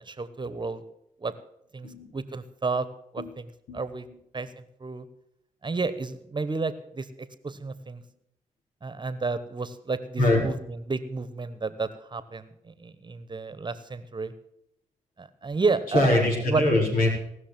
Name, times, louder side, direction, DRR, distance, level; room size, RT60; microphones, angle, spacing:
voice 1, 0.1-0.8 1.2-1.3 1.7-2.9 3.1-4.1 4.3-4.5 4.8-5.0 5.6-8.0 8.8-14.3 15.2-16.1 16.5-16.6, right 4 dB, 30° right, 14 dB, 1.1 m, -31 dB
voice 2, 15.9-17.1, left 1 dB, 80° left, 0 dB, 4.4 m, -23 dB
18.0 x 6.3 x 7.5 m, 0.77 s
supercardioid pair, 60°, 14 cm